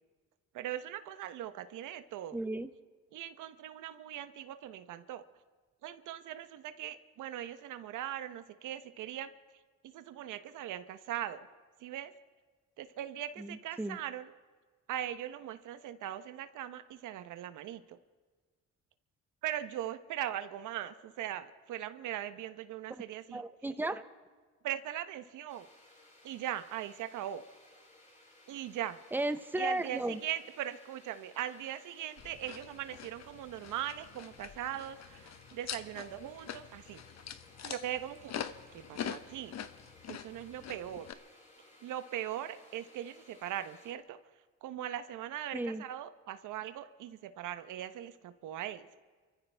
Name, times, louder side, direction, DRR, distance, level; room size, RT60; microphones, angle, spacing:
voice 1, 0.5-2.4 3.1-5.2 5.8-9.3 9.8-11.5 11.8-12.1 12.8-14.3 14.9-18.0 19.4-23.4 24.6-25.7 26.2-27.4 28.5-29.0 29.6-37.0 37.6-38.4 38.7-39.5 40.1-41.1 41.8-44.2 44.6-49.0, right 11 dB, 85° right, 11 dB, 1.0 m, -40 dB
voice 2, 2.3-2.7 13.4-14.0 23.3-24.1 29.1-30.2 45.5-45.8, right 2 dB, 5° right, 10 dB, 0.8 m, -34 dB
sound 1, 25.5-43.9, left 1 dB, 25° left, 4.5 m, -60 dB
sound 2, 32.2-41.1, left 8 dB, 60° left, 1.0 m, -45 dB
28.0 x 14.5 x 3.4 m, 1.5 s
cardioid pair, 90°, 30 cm